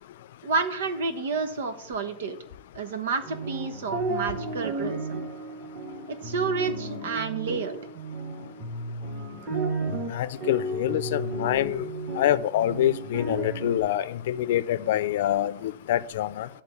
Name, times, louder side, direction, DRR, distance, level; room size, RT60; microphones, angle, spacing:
voice 1, 0.4-2.4 2.7-5.0 6.1-7.8, right 4 dB, 90° right, 9 dB, 1.1 m, -30 dB
sound 1, 3.2-13.8, right 2 dB, 25° right, 2.2 m, -33 dB
voice 2, 10.1-11.9 12.2-16.5, left 12 dB, 60° left, 15 dB, 0.5 m, -26 dB
11.0 x 3.7 x 7.1 m, 0.68 s
supercardioid pair, 170°, 0 cm